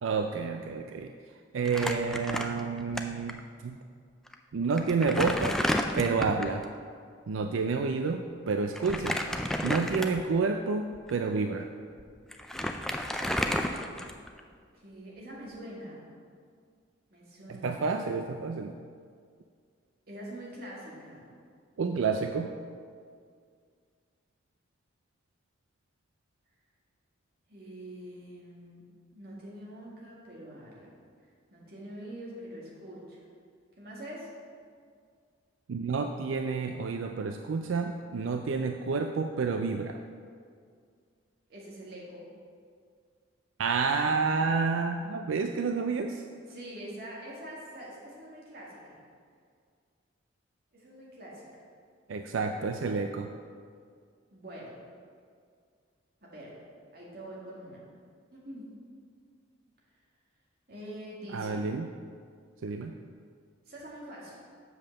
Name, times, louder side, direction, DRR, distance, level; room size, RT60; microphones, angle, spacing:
voice 1, 0.0-1.1 1.5-3.8 4.5-5.6 6.0-6.7 7.3-9.2 9.6-11.7 17.5-18.7 21.8-22.6 35.7-40.0 43.6-46.2 52.1-53.3 61.3-61.9 62.6-62.9, right 4 dB, 85° right, 5 dB, 0.4 m, -29 dB
Crumpling crinkling, 1.6-3.0 3.3-3.4 4.3-4.4 4.8-6.6 8.7-10.4 10.9-11.1 12.0-12.1 12.3-14.4, left 1 dB, ahead, 0.3 m, -31 dB
voice 2, 14.7-16.0 17.1-17.9 20.1-21.3 27.5-28.8 29.1-31.0 31.5-33.2 33.8-34.3 41.5-42.3 46.5-49.0 50.7-51.4 54.3-54.7 56.2-56.5 56.9-57.9 58.3-58.7 60.7-61.7 63.7-64.4, right 1 dB, 50° right, -5 dB, 2.1 m, -44 dB
7.1 x 5.5 x 6.5 m, 2.1 s
head